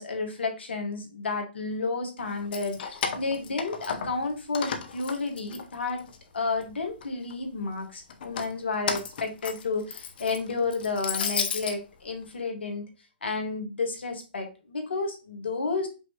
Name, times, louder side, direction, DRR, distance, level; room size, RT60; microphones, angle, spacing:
voice 1, 0.0-6.0 6.3-12.9 13.2-15.9, left 3 dB, 80° left, 4 dB, 1.4 m, -31 dB
Keys jangling, 2.3-4.3 4.5-6.2 6.6-7.3 8.1-11.8, left 6 dB, 60° left, 0.8 m, -33 dB
5.4 x 2.9 x 2.8 m, 0.31 s
hypercardioid pair, 130°, 6 cm